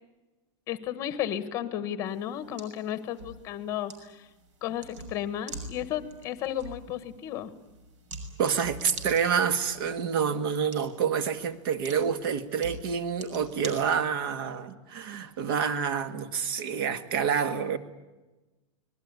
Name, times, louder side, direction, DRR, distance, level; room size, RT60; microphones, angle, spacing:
voice 1, 0.7-4.3 4.6-7.5, left 10 dB, 20° left, 13 dB, 1.2 m, -33 dB
sound 1, 2.1-14.4, right 3 dB, 65° right, 6.4 m, -46 dB
voice 2, 8.4-17.8, right 7 dB, 45° right, 11 dB, 1.9 m, -28 dB
26.0 x 20.5 x 9.6 m, 1.1 s
supercardioid pair, 180°, 16 cm